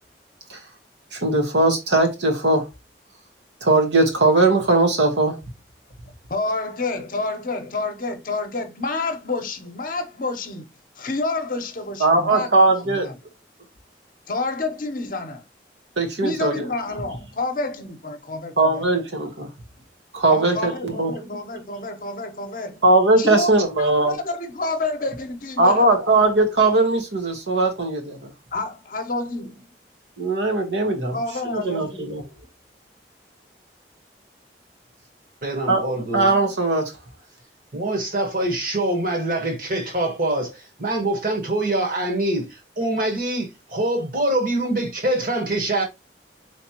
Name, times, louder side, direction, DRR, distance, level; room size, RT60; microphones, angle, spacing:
voice 1, 1.1-2.7 3.6-5.4 12.0-13.1 16.0-16.7 18.6-19.5 20.1-21.1 22.8-24.2 25.6-28.3 30.2-31.2 31.5-32.2 35.7-36.9, right 2 dB, 90° right, 1.2 m, -19 dB
voice 2, 6.3-10.7 11.0-12.5 12.8-13.2 14.3-15.4 16.2-18.8 20.3-22.8 23.2-23.5 23.8-25.9 28.5-29.6 31.1-32.1, left 3 dB, 50° left, 0.8 m, -29 dB
voice 3, 35.4-36.3 37.7-42.5 42.8-45.8, right 1 dB, 50° right, 1.3 m, -24 dB
4.1 x 3.2 x 2.9 m
head